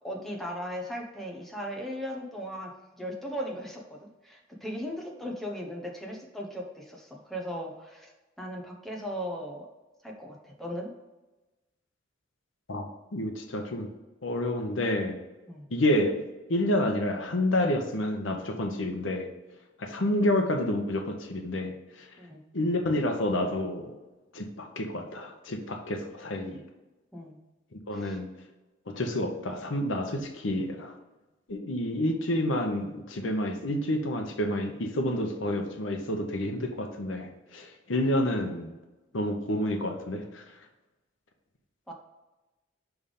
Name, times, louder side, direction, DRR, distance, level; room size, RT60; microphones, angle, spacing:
voice 1, 0.0-8.1 8.4-9.7 10.0-10.9 15.5-15.7 22.2-22.4 27.1-27.4 27.9-28.2 41.9-42.0, equal, ahead, -1 dB, 0.8 m, -37 dB
voice 2, 12.7-13.9 14.2-15.2 15.7-16.2 16.5-19.3 19.8-22.1 22.5-23.9 24.3-26.6 27.9-28.3 28.9-30.9 31.5-38.7 39.1-40.4, left 1 dB, 85° left, 4 dB, 0.8 m, -29 dB
5.6 x 3.5 x 5.2 m, 1.1 s
head